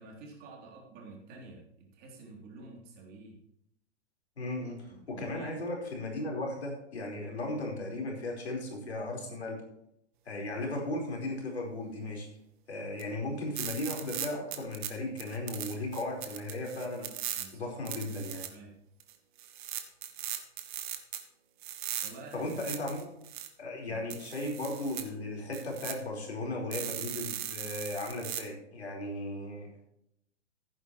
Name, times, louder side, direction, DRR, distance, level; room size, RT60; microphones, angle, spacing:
voice 1, 0.0-3.4 4.9-5.6 17.3-17.8 18.5-18.8 22.0-22.8 23.9-24.0, right 3 dB, 30° right, -1 dB, 3.3 m, -49 dB
voice 2, 4.4-9.6 10.2-12.3 12.7-17.1 17.5-18.4 22.3-23.0 23.6-29.7, left 2 dB, 70° left, 0 dB, 4.7 m, -36 dB
sound 1, 13.0-13.1 13.5-14.9 15.2-17.4 17.8-18.5 19.0-19.1 19.4-21.2 21.6-23.5 24.1-25.0 25.5-25.9 26.7-28.4, right 11 dB, 45° right, 1.6 m, -38 dB
15.5 x 10.0 x 3.1 m, 0.78 s
figure-of-eight pair, 110°, 34 cm